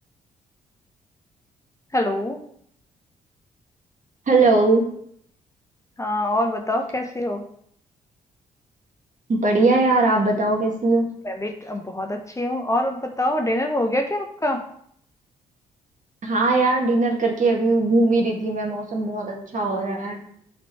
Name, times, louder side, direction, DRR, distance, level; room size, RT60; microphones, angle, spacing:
voice 1, 1.9-2.4 6.0-7.4 11.2-14.6, left 1 dB, 15° left, 3 dB, 1.0 m, -25 dB
voice 2, 4.3-4.8 9.3-11.1 16.2-20.2, right 3 dB, 45° right, 1 dB, 2.1 m, -20 dB
5.8 x 4.4 x 4.7 m, 0.66 s
hypercardioid pair, 45°, 18 cm